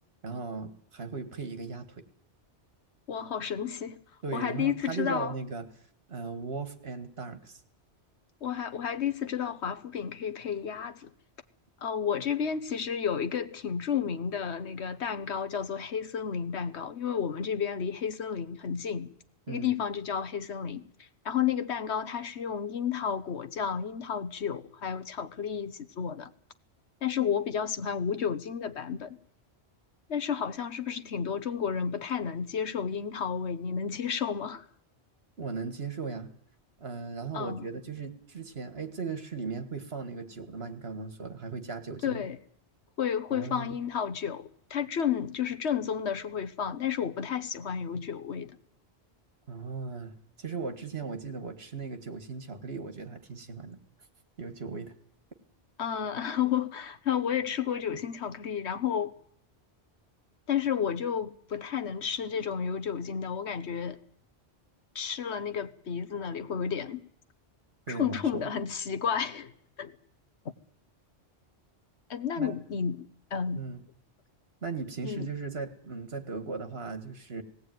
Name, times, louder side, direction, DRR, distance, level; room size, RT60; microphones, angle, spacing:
voice 1, 0.2-2.0 4.2-5.7 6.1-7.6 19.5-19.7 35.4-36.3 36.8-42.2 43.3-43.8 49.5-53.8 54.4-54.9 67.9-68.4 72.4-72.6 73.6-73.8 74.6-77.4, right 4 dB, 65° right, 2.0 m, -37 dB
voice 2, 3.1-4.0 4.3-5.3 8.4-11.1 11.8-19.1 19.5-26.3 27.0-29.2 30.1-34.6 37.3-37.6 42.0-42.4 43.0-48.6 55.8-59.2 60.5-64.0 64.9-67.0 67.9-69.5 69.8-69.9 72.1-73.6 75.0-75.3, left 7 dB, 75° left, 1.3 m, -31 dB
18.5 x 17.0 x 9.3 m
omnidirectional pair, 1.1 m